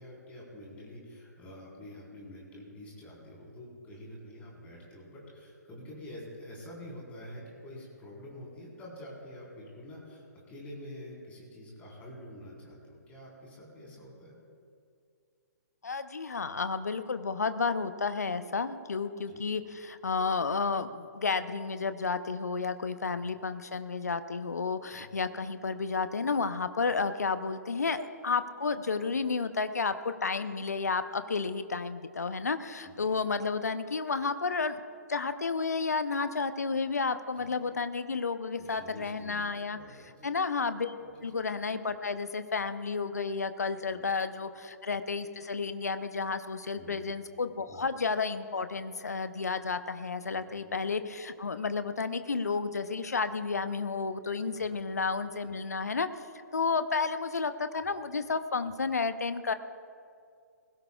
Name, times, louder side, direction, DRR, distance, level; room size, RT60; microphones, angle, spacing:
voice 1, 0.0-14.3 19.3-19.4 24.9-25.0 32.8-33.1 37.4-37.8 38.6-40.3 41.0-41.2 43.8-44.0 46.7-47.1 47.7-47.8 50.5-50.8 54.6-54.8, left 1 dB, 15° left, -4 dB, 4.2 m, -47 dB
voice 2, 15.8-34.8 35.1-39.8 40.2-40.9 41.2-56.1 56.5-59.5, left 4 dB, 65° left, 11 dB, 0.8 m, -31 dB
20.5 x 16.5 x 2.4 m, 2.3 s
figure-of-eight pair, 125°, 9 cm